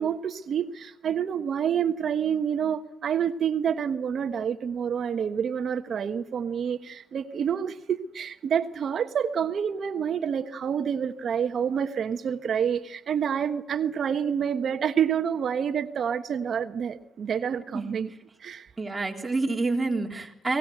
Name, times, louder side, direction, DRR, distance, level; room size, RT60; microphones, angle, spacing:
voice 1, 0.0-18.1 18.4-18.7, right 8 dB, 55° right, 9 dB, 1.2 m, -28 dB
voice 2, 18.8-20.6, right 3 dB, 20° right, 1 dB, 3.7 m, -28 dB
24.0 x 18.5 x 7.9 m, 0.83 s
cardioid pair, 90°, 0 cm